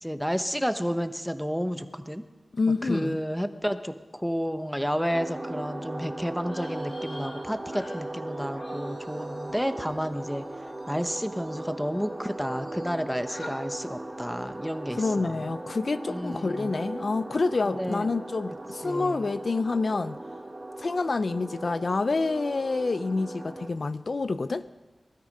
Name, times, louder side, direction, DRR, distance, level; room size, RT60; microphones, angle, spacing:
voice 1, 0.0-2.2 2.8-10.5 10.9-15.4 16.1-16.7 17.6-18.1 18.8-19.3, equal, ahead, 1.0 m, -31 dB
voice 2, 2.5-3.2 14.9-20.2 20.8-24.7, left 3 dB, 60° left, 0.4 m, -28 dB
sound 1, 5.1-23.7, right 2 dB, 35° right, 1.8 m, -38 dB
sound 2, 6.4-12.0 12.3-13.0 13.3-13.6, left 1 dB, 80° left, 2.5 m, -48 dB
19.5 x 13.0 x 5.4 m
wide cardioid pair, 65°, 0 cm